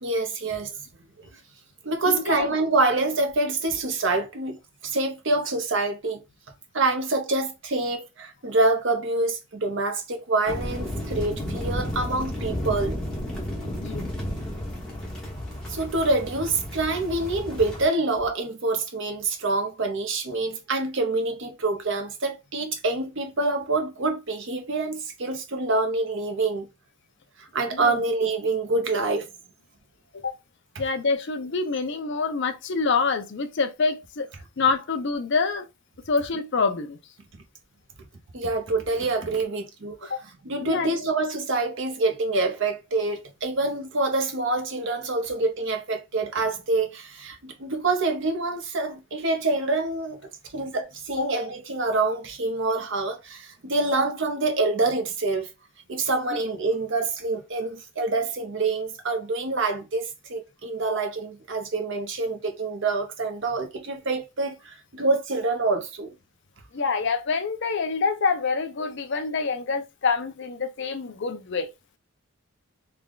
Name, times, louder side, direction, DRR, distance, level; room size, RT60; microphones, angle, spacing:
voice 1, 0.0-0.8 1.8-4.6 4.8-6.2 6.7-13.0 15.7-26.7 27.4-29.3 38.3-50.2 50.5-55.5 55.9-66.1, right 3 dB, 55° right, 0.8 m, -26 dB
voice 2, 2.1-2.5 13.8-14.1 27.7-28.0 30.2-30.3 30.8-34.3 34.6-35.7 36.1-37.0 40.1-40.2 40.6-41.1 51.2-51.3 66.7-71.7, left 4 dB, 55° left, 0.5 m, -26 dB
sound 1, 10.5-17.8, equal, 5° left, 1.1 m, -32 dB
3.4 x 2.3 x 3.8 m
head